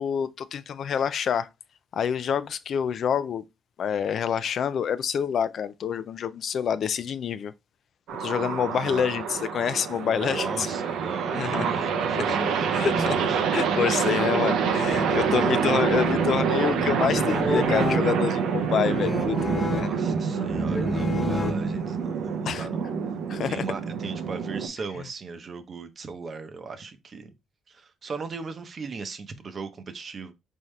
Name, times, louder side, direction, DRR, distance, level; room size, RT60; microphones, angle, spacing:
voice 1, 0.0-1.5 1.9-3.4 3.8-7.5 8.2-10.7 11.3-11.7 12.2-12.3 12.7-13.2 13.5-19.9 22.5-22.7 23.3-23.7, left 8 dB, 60° left, 0.4 m, -27 dB
sound 1, 8.1-24.7, right 6 dB, 85° right, 0.6 m, -26 dB
voice 2, 8.7-9.1 10.2-13.5 15.3-15.6 19.7-22.8 23.4-27.3 27.7-30.3, right 4 dB, 45° right, 0.8 m, -37 dB
sound 2, 14.6-22.0, left 2 dB, 25° left, 0.9 m, -31 dB
4.2 x 3.6 x 3.1 m
cardioid pair, 90°, 0 cm